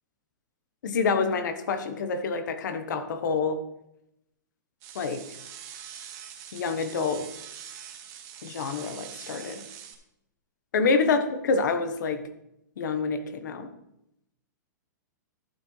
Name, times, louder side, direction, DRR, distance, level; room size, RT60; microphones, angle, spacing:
voice 1, 0.8-3.6 4.9-5.2 6.5-7.3 8.4-9.6 10.7-12.3 12.8-13.7, left 4 dB, 70° left, 9 dB, 1.2 m, -27 dB
sound 1, 4.8-9.9, right 9 dB, 30° right, 1.2 m, -44 dB
11.5 x 8.6 x 3.3 m, 0.83 s
hypercardioid pair, 155°, 10 cm